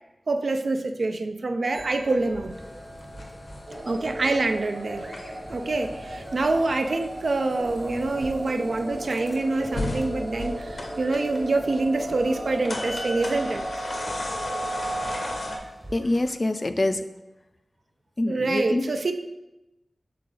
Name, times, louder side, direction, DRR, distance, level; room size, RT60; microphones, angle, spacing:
voice 1, 0.3-2.6 3.9-5.1 5.5-13.6 18.3-19.1, right 2 dB, 75° right, 7 dB, 0.4 m, -26 dB
sound 1, 1.7-16.3, right 1 dB, 20° right, 0.8 m, -46 dB
sound 2, 2.5-15.6, left 1 dB, 85° left, 1.0 m, -36 dB
sound 3, 3.7-13.7, right 1 dB, 55° right, 0.9 m, -37 dB
voice 2, 15.9-17.1 18.2-18.9, left 2 dB, 40° left, 9 dB, 0.4 m, -25 dB
6.6 x 3.8 x 3.8 m, 0.99 s
wide cardioid pair, 85°, 0 cm